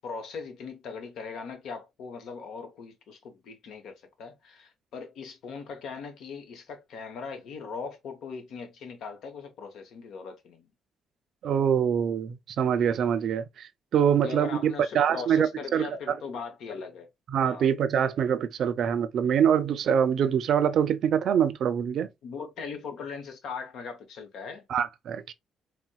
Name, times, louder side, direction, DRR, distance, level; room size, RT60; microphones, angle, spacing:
voice 1, 0.0-10.7 14.2-17.1 17.4-17.7 22.2-24.6, left 5 dB, 75° left, 0.9 m, -39 dB
voice 2, 11.4-15.9 17.3-22.1 24.7-25.3, right 8 dB, 70° right, 0.4 m, -25 dB
4.1 x 2.1 x 2.3 m
cardioid pair, 90°, 0 cm